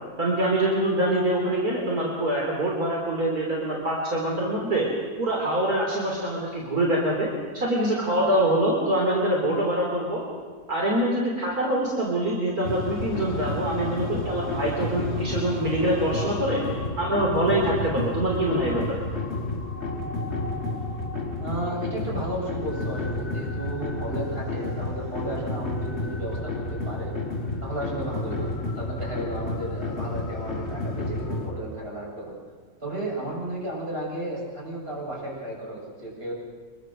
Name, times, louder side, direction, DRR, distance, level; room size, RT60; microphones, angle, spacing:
voice 1, 0.2-4.9 5.2-10.2 10.7-16.6 17.0-19.0, right 1 dB, 70° right, -2 dB, 4.1 m, -25 dB
sound 1, 12.6-31.5, left 2 dB, 45° left, 4.1 m, -31 dB
voice 2, 21.4-27.1 27.6-32.3 32.8-36.3, right 1 dB, 40° right, -4 dB, 8.1 m, -33 dB
25.5 x 22.5 x 6.7 m, 1.5 s
omnidirectional pair, 1.6 m